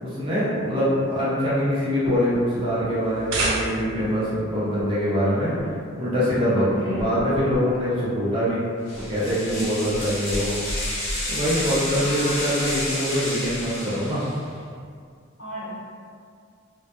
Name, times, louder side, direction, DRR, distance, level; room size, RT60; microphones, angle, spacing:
voice 1, 0.0-5.5 6.0-8.6 9.1-10.5 11.3-14.2, equal, 25° right, -10 dB, 0.5 m, -24 dB
voice 2, 0.6-0.9 6.7-7.1 9.8-10.0 12.0-12.6 15.4-15.7, equal, 55° left, -10 dB, 0.8 m, -35 dB
sound 1, 2.1-3.0 4.0-4.2 4.8-5.0 5.6-5.8 7.0-7.7 9.0-9.8, equal, 25° left, 0.5 m, -35 dB
sound 2, 3.0-4.1, right 2 dB, 80° right, 0.5 m, -27 dB
sound 3, 8.9-14.4, left 1 dB, 90° left, 0.9 m, -30 dB
2.1 x 2.0 x 2.9 m, 2.2 s
head